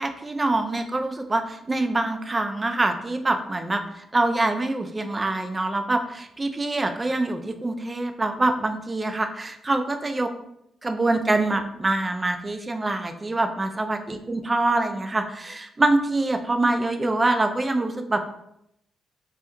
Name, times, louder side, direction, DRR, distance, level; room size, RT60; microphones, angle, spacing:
voice 1, 0.0-10.3 10.8-18.2, right 2 dB, 25° right, 7 dB, 0.4 m, -25 dB
3.2 x 2.2 x 3.0 m, 0.79 s
supercardioid pair, 65°, 0 cm